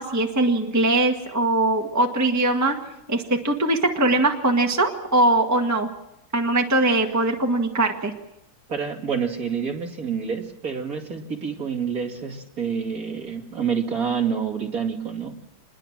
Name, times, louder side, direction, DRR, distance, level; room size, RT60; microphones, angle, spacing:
voice 1, 0.0-2.7 3.1-5.9 6.3-8.1, right 2 dB, 10° right, 2 dB, 1.5 m, -21 dB
voice 2, 8.7-15.4, right 6 dB, 40° right, 2 dB, 2.9 m, -28 dB
27.0 x 21.5 x 7.5 m, 0.87 s
omnidirectional pair, 2.4 m